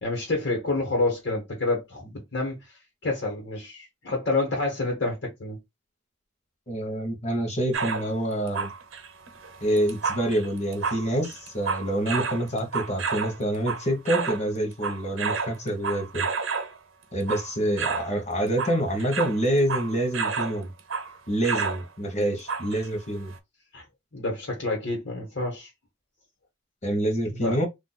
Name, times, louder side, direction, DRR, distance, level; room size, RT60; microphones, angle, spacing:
voice 1, 0.0-2.6 3.0-5.6 23.7-23.8 24.1-25.7 27.3-27.6, left 2 dB, 60° left, 1.2 m, -28 dB
voice 2, 6.7-8.7 9.6-16.3 17.1-20.7 21.3-23.3 26.8-27.7, right 1 dB, 35° left, 0.9 m, -27 dB
sound 1, 7.7-8.1 8.5-14.4 14.7-16.7 17.2-17.5 17.8-18.1 18.5-20.6 20.9-21.1 21.4-21.8 22.5-22.9 23.3-23.4, right 5 dB, 80° right, 0.7 m, -30 dB
2.5 x 2.2 x 4.0 m
head